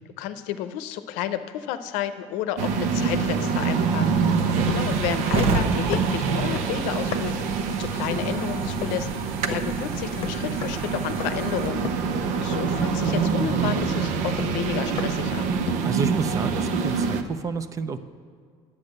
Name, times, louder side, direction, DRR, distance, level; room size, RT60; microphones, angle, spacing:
voice 1, 0.0-4.4 4.7-7.4 7.7-9.1 9.4-11.8 12.4-15.5, left 11 dB, 90° left, 10 dB, 0.7 m, -31 dB
sound 1, 2.6-17.2, right 5 dB, 80° right, 0.8 m, -25 dB
sound 2, 4.0-11.7, right 3 dB, 50° right, 1.0 m, -33 dB
voice 2, 4.4-4.8 15.8-18.0, right 5 dB, 25° right, 12 dB, 0.5 m, -29 dB
sound 3, 4.7-5.6 5.9-7.5 8.1-8.4 8.8-9.1 9.5-9.8 10.2-10.9 11.2-11.5 11.8-12.2 12.5-12.8 13.1-15.3 15.7-16.0, left 7 dB, 55° left, 0.8 m, -35 dB
10.0 x 8.5 x 6.6 m, 2.1 s
cardioid pair, 145°, 12 cm